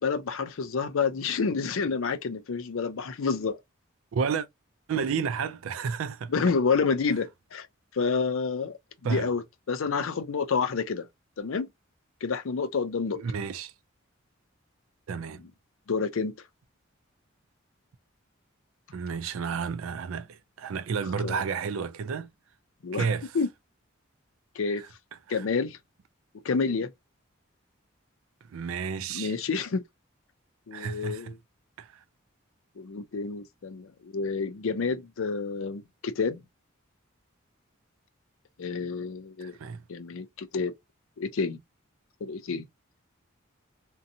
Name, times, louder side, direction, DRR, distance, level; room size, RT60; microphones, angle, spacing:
voice 1, 0.0-3.6 6.3-7.7 7.9-8.7 9.1-11.1 11.4-11.7 12.2-13.2 15.9-16.3 21.2-21.4 22.8-23.1 23.3-23.5 24.6-24.8 25.3-25.8 26.4-26.9 29.1-29.8 30.7-31.3 32.8-36.4 38.6-39.6 39.9-40.7 41.2-41.6 42.2-42.6, left 5 dB, 75° left, 0.5 m, -29 dB
voice 2, 4.1-4.5 4.9-6.3 9.0-9.3 13.2-13.7 15.1-15.4 18.9-22.3 22.9-23.4 24.8-24.9 25.3-25.5 28.5-29.3 30.7-31.4 31.8-32.0 39.4-39.8, right 6 dB, 80° right, 0.4 m, -31 dB
2.6 x 2.2 x 2.6 m
head